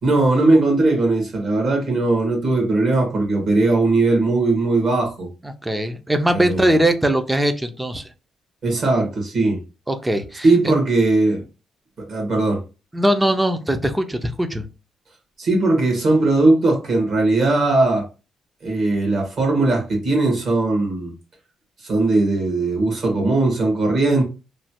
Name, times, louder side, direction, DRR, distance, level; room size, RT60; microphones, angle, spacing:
voice 1, 0.0-5.3 6.3-6.7 8.6-9.6 10.4-11.4 12.0-12.6 15.4-18.0 18.6-21.1 21.8-24.2, right 2 dB, 55° right, 1.4 m, -19 dB
voice 2, 5.4-8.0 9.9-10.7 12.9-14.6, right 1 dB, 10° right, 0.4 m, -21 dB
3.1 x 2.2 x 2.8 m
cardioid pair, 120°, 0 cm